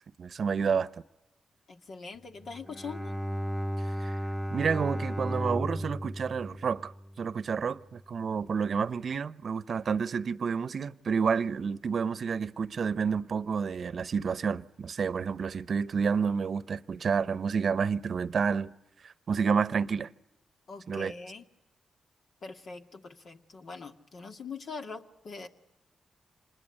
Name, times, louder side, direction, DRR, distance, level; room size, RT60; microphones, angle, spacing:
voice 1, 0.2-0.9 4.0-4.2 4.5-6.9 7.2-18.7 19.0-20.1 20.9-21.1, right 6 dB, 60° right, 0.9 m, -29 dB
voice 2, 1.7-3.1 20.7-21.5 22.4-25.5, left 4 dB, 65° left, 2.2 m, -43 dB
Bowed string instrument, 2.4-7.6, equal, 5° left, 1.3 m, -35 dB
26.5 x 21.0 x 9.7 m
supercardioid pair, 50°, 0 cm